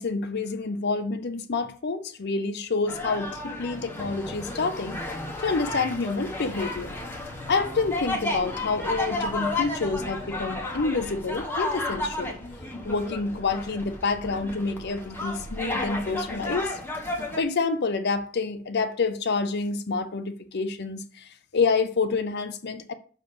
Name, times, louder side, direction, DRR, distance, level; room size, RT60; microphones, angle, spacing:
voice 1, 0.0-5.0 5.4-7.0 7.5-12.4 12.8-16.8 17.4-22.9, left 4 dB, 50° left, 0.6 m, -28 dB
sound 1, 2.9-17.4, left 2 dB, 10° left, 1.2 m, -33 dB
sound 2, 6.5-16.6, right 1 dB, 35° right, 0.6 m, -46 dB
6.4 x 5.2 x 6.0 m
head